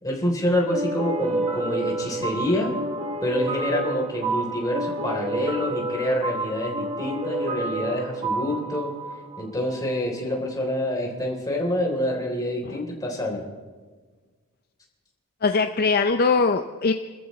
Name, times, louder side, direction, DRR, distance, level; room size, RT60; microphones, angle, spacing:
voice 1, 0.0-2.7 3.2-8.9 9.4-13.5, left 1 dB, 15° left, -1 dB, 3.5 m, -27 dB
sound 1, 0.7-10.0, right 2 dB, 25° right, 1.0 m, -29 dB
voice 2, 15.4-16.9, left 4 dB, 45° left, 7 dB, 0.6 m, -21 dB
30.0 x 14.5 x 3.2 m, 1.4 s
head